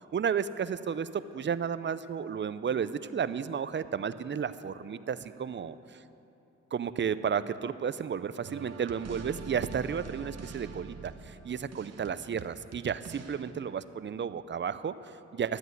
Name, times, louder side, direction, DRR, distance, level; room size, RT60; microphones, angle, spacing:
voice 1, 0.1-5.7 6.7-15.6, right 7 dB, 40° right, 14 dB, 0.5 m, -33 dB
sound 1, 8.4-13.5, right 5 dB, 60° right, 1.0 m, -44 dB
11.5 x 8.0 x 9.3 m, 2.8 s
cardioid pair, 60°, 29 cm